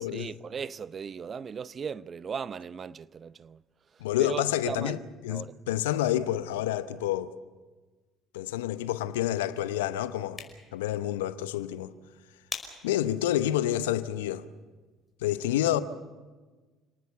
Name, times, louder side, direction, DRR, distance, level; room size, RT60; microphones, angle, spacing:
voice 1, 0.1-3.6 4.2-5.0 5.3-5.5, right 6 dB, 40° right, 0.6 m, -37 dB
voice 2, 4.0-5.0 5.2-7.3 8.3-10.4 10.7-11.9 12.8-14.5 15.2-15.8, left 12 dB, 80° left, 0.8 m, -28 dB
sound 1, 10.1-15.2, left 3 dB, 20° left, 5.3 m, -47 dB
28.5 x 18.5 x 7.0 m
hypercardioid pair, 60°, 0 cm